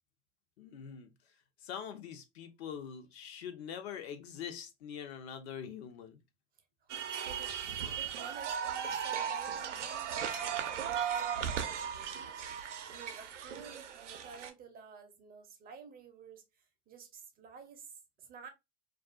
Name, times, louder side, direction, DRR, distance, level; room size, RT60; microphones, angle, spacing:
voice 1, 0.6-1.1 1.6-6.2, left 8 dB, 65° left, 0.7 m, -44 dB
voice 2, 6.8-12.4 12.9-16.5 16.9-17.9 18.2-18.5, right 6 dB, 25° right, 0.5 m, -52 dB
sound 1, 6.9-14.5, right 8 dB, 85° right, 0.5 m, -37 dB
2.4 x 2.3 x 2.2 m
hypercardioid pair, 90°, 35 cm